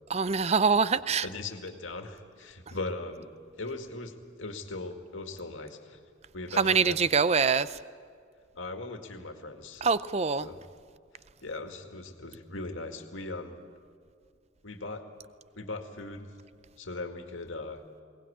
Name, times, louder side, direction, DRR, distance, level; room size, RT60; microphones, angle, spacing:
voice 1, 0.1-1.2 6.6-7.7 9.8-10.5, right 5 dB, 30° right, 15 dB, 0.5 m, -24 dB
voice 2, 1.2-3.3 3.6-6.0 6.3-7.1 8.5-9.9 10.4-10.6 11.4-13.6 14.6-15.1 15.6-16.3 16.8-17.8, left 2 dB, 80° left, 5 dB, 2.1 m, -39 dB
22.0 x 18.5 x 8.7 m, 2.2 s
head